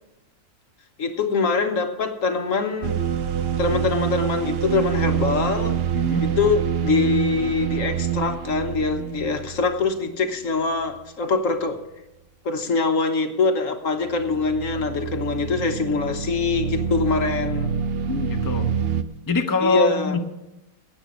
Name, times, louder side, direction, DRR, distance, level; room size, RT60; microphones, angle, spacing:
voice 1, 1.0-3.0 3.6-5.8 6.2-11.8 12.4-17.7 19.6-20.1, left 4 dB, 60° left, 7 dB, 1.4 m, -24 dB
sound 1, 2.8-10.2 10.8-11.0 14.0-19.0, right 8 dB, 55° right, 0.7 m, -26 dB
voice 2, 5.9-6.3 18.1-18.7 19.3-20.2, left 2 dB, 15° left, 4 dB, 0.8 m, -23 dB
16.0 x 8.7 x 6.2 m, 0.95 s
omnidirectional pair, 1.6 m